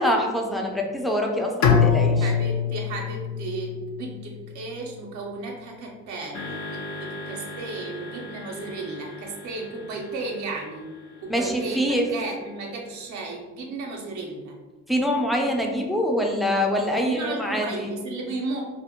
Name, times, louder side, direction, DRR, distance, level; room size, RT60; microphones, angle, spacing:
voice 1, 0.0-2.3 11.3-12.1 14.9-17.9, equal, ahead, 0 dB, 0.4 m, -24 dB
Bowed string instrument, 1.6-4.6, left 6 dB, 65° left, 0.4 m, -23 dB
voice 2, 2.1-10.9 11.2-14.5 16.9-18.6, right 3 dB, 70° right, 0 dB, 0.5 m, -34 dB
sound 1, 6.3-12.7, left 2 dB, 45° left, 0.9 m, -40 dB
2.4 x 2.0 x 2.8 m, 1.3 s
cardioid pair, 90°, 30 cm